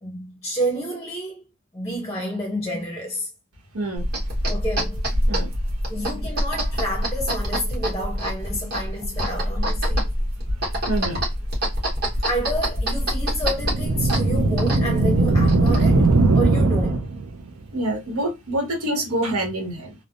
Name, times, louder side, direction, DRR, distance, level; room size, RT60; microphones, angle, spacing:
voice 1, 0.0-1.4 1.7-3.3 4.5-5.1 5.9-10.1 12.1-17.0, equal, 15° left, 0.6 m, -30 dB
voice 2, 3.7-4.0 5.3-5.5 10.9-11.2 16.6-16.7 17.7-19.9, right 1 dB, 90° right, 1.1 m, -26 dB
sound 1, 4.0-16.1, equal, 45° right, 1.2 m, -26 dB
sound 2, 13.6-17.4, right 2 dB, 65° right, 0.5 m, -19 dB
3.3 x 2.0 x 2.4 m
head